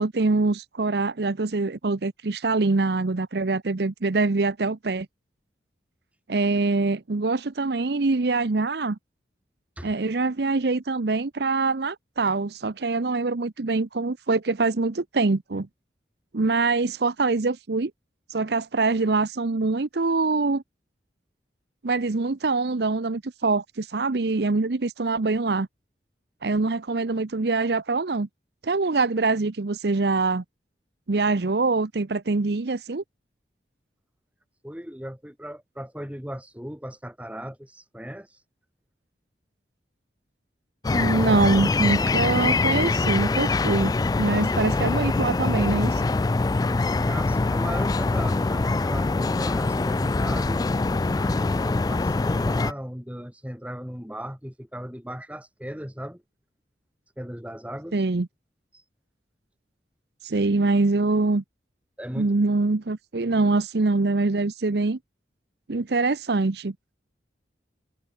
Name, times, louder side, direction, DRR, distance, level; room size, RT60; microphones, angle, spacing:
voice 1, 0.0-5.1 6.3-9.0 9.8-15.7 16.3-17.9 18.3-20.6 21.8-25.7 26.4-28.3 28.6-30.4 31.1-33.0 40.9-46.0 57.9-58.3 60.2-61.4 62.2-65.0 65.7-66.7, right 3 dB, 65° right, 0.7 m, -24 dB
voice 2, 34.6-38.4 46.5-50.7 51.1-56.2 57.2-58.0 58.7-58.8 62.0-62.3, equal, 10° right, 4.3 m, -37 dB
sound 1, 40.8-52.7, left 3 dB, 20° left, 0.3 m, -24 dB
head